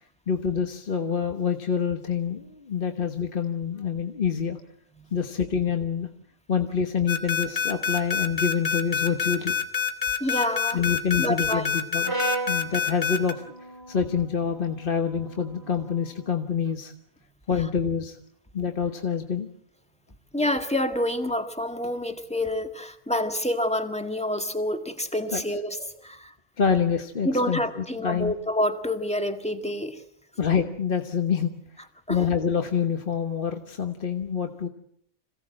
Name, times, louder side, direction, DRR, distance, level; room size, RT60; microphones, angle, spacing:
voice 1, 0.3-4.6 5.1-6.1 6.5-9.6 10.7-12.2 12.5-13.4 13.9-16.9 17.5-18.2 18.5-19.5 25.3-25.4 26.6-28.3 30.4-31.5 32.1-34.7, left 6 dB, 40° left, 6 dB, 1.4 m, -26 dB
sound 1, 7.1-13.3, left 7 dB, 25° left, 2.3 m, -26 dB
voice 2, 10.2-10.8 11.2-11.7 20.3-26.3 27.2-30.0 32.1-32.3, left 1 dB, 5° left, 7 dB, 1.7 m, -27 dB
Brass instrument, 12.0-16.3, right 3 dB, 15° right, 2.7 m, -36 dB
26.5 x 17.0 x 7.6 m, 0.70 s
omnidirectional pair, 1.5 m